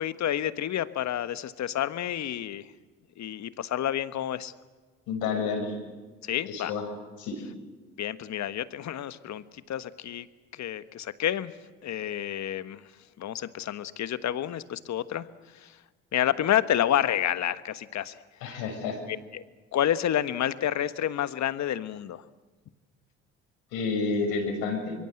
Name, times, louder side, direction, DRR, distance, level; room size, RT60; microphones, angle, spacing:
voice 1, 0.0-2.7 3.2-4.5 6.2-6.7 8.0-10.3 10.5-11.5 11.8-12.8 13.2-15.3 15.5-15.8 16.1-18.2 19.1-19.4 19.7-22.2, left 11 dB, 50° left, 14 dB, 1.4 m, -29 dB
voice 2, 5.1-5.7 6.5-6.8 7.2-7.4 18.4-19.0 23.7-24.9, left 4 dB, 75° left, 3 dB, 6.5 m, -29 dB
25.0 x 23.0 x 7.9 m, 1.3 s
hypercardioid pair, 55°, 35 cm